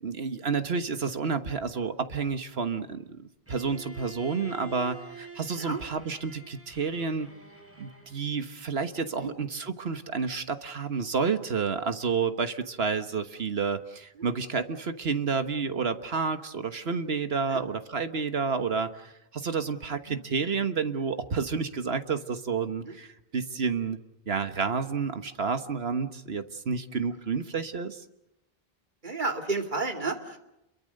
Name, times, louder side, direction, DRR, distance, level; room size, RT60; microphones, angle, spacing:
voice 1, 0.0-7.3 7.8-24.0 24.3-28.0, right 5 dB, 75° right, 9 dB, 1.6 m, -30 dB
Bowed string instrument, 3.5-8.4, right 3 dB, 10° right, 5.5 m, -47 dB
voice 2, 29.0-30.4, right 3 dB, 50° right, 4 dB, 2.6 m, -32 dB
30.0 x 23.0 x 6.6 m, 0.90 s
omnidirectional pair, 1.1 m